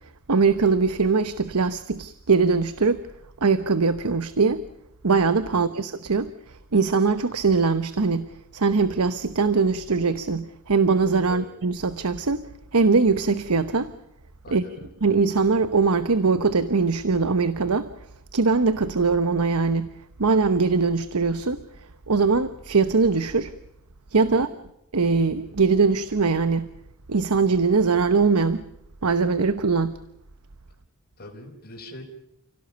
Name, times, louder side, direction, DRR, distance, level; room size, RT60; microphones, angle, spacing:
voice 1, 0.3-3.0 3.4-4.6 5.0-6.3 6.7-8.3 8.5-12.4 12.7-13.9 14.5-14.6 15.0-17.9 18.3-19.9 20.2-21.6 22.1-23.5 24.1-24.5 24.9-26.7 27.1-28.6 29.0-29.9, right 4 dB, 85° right, 1.0 m, -21 dB
voice 2, 5.5-5.8 11.3-11.5 14.4-15.0 24.3-24.6 31.2-32.0, left 1 dB, 45° left, 4.3 m, -42 dB
30.0 x 17.0 x 6.9 m
head